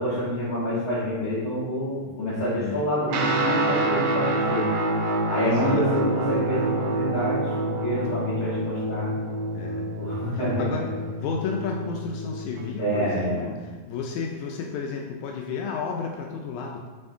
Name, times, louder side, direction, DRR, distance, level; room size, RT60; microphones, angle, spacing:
voice 1, 0.0-4.7 5.3-9.1 10.0-10.8 12.8-13.4, equal, 40° left, -13 dB, 1.7 m, -27 dB
Guitar, 3.1-12.7, right 2 dB, 80° right, 1.3 m, -27 dB
voice 2, 5.4-5.9 9.5-9.8 10.4-10.9 11.2-16.9, left 5 dB, 80° left, 1 dB, 1.9 m, -32 dB
7.8 x 3.6 x 3.5 m, 1.3 s
omnidirectional pair, 3.5 m